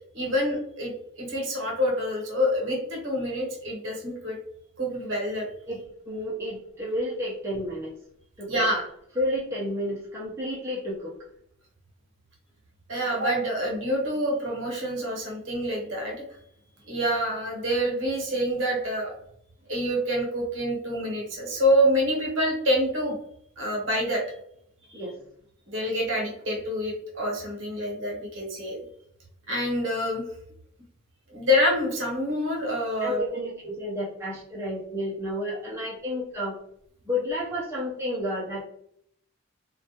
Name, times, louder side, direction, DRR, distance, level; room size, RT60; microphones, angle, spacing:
voice 1, 0.1-4.4 4.8-5.5 8.5-8.9 12.9-16.2 16.9-19.1 19.7-23.2 23.6-24.2 25.7-28.8 29.5-30.2 31.3-33.4, equal, 60° right, -1 dB, 0.9 m, -26 dB
voice 2, 5.7-7.9 8.4-8.5 9.2-11.1 24.9-25.2 33.0-36.6 37.1-38.6, left 1 dB, 10° right, -7 dB, 0.4 m, -31 dB
2.2 x 2.2 x 2.7 m, 0.70 s
head